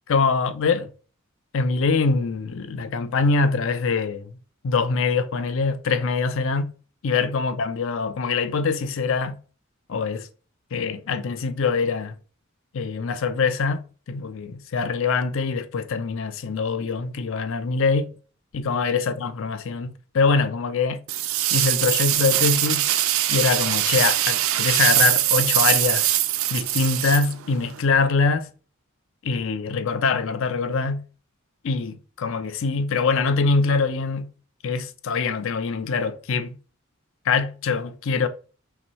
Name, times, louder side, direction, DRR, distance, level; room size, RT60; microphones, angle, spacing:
voice 1, 0.1-0.9 1.5-4.4 4.6-6.7 7.0-9.4 9.9-10.3 10.7-12.1 12.7-13.8 14.1-18.1 18.5-21.0 21.5-22.8 23.3-26.2 26.5-28.5 29.2-31.0 31.6-34.3 34.6-36.6 37.3-38.3, left 4 dB, 65° left, 0.5 m, -23 dB
sound 1, 21.1-27.8, right 13 dB, 70° right, 0.4 m, -22 dB
5.7 x 2.6 x 3.1 m
head